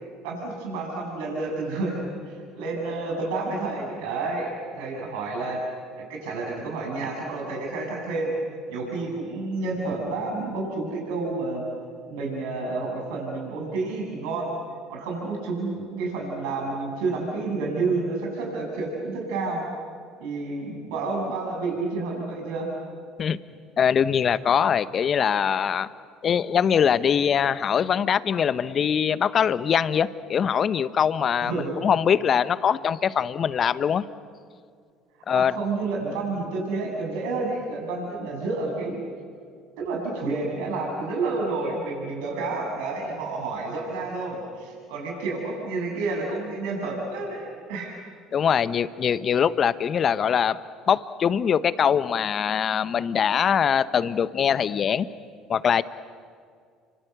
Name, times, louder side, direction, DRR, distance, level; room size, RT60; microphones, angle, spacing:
voice 1, 0.2-5.6 5.9-8.3 8.7-11.6 12.1-14.6 14.9-19.7 20.2-22.7 31.4-31.7 35.4-39.0 39.8-47.9, right 3 dB, 80° right, -1 dB, 7.3 m, -30 dB
voice 2, 23.8-25.9 26.2-31.5 31.8-34.0 35.3-35.5 48.3-50.6 50.9-55.1 55.5-55.8, left 8 dB, 45° left, 15 dB, 1.0 m, -22 dB
29.5 x 24.5 x 8.2 m, 2.2 s
hypercardioid pair, 75°, 0 cm